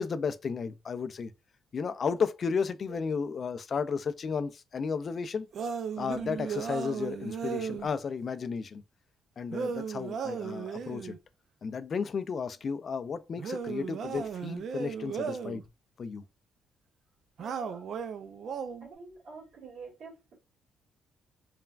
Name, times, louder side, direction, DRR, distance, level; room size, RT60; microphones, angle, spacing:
voice 1, 0.0-1.3 1.7-5.5 6.0-8.8 9.4-11.2 11.6-15.6 16.0-16.2, left 5 dB, 45° left, 0.3 m, -33 dB
sound 1, 5.5-7.9 9.5-11.2 13.4-15.6 17.4-18.9, right 6 dB, 60° right, 0.3 m, -36 dB
voice 2, 17.4-17.8 18.8-20.4, right 4 dB, 80° right, 1.7 m, -47 dB
3.2 x 2.2 x 2.3 m
cardioid pair, 90°, 0 cm